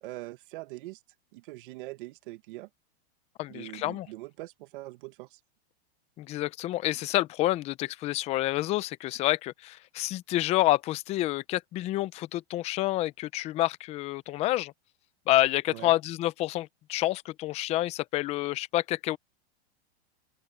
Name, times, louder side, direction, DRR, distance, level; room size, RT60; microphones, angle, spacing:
voice 1, 0.0-1.0 1.3-2.7 3.5-5.4 15.7-15.9, right 19 dB, 50° right, 1.7 m, -42 dB
voice 2, 3.4-4.1 6.2-14.7 15.3-19.2, left 16 dB, 20° left, 0.6 m, -28 dB
open air
supercardioid pair, 155°, 33 cm